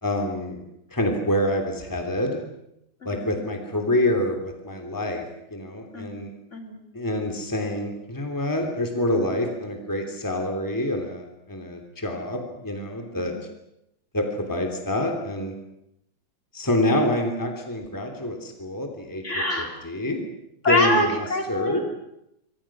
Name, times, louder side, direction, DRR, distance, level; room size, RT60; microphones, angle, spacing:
voice 1, 0.0-0.6 0.9-2.4 3.0-5.2 5.5-6.3 6.9-13.3 14.1-15.5 16.5-19.2 19.6-20.2 20.7-21.8, left 1 dB, 10° left, 3 dB, 3.1 m, -26 dB
voice 2, 3.0-3.4 5.9-6.8 13.2-13.4 19.2-19.7 20.6-21.8, left 1 dB, 40° left, 2 dB, 3.9 m, -26 dB
28.5 x 24.0 x 6.2 m, 0.82 s
omnidirectional pair, 2.0 m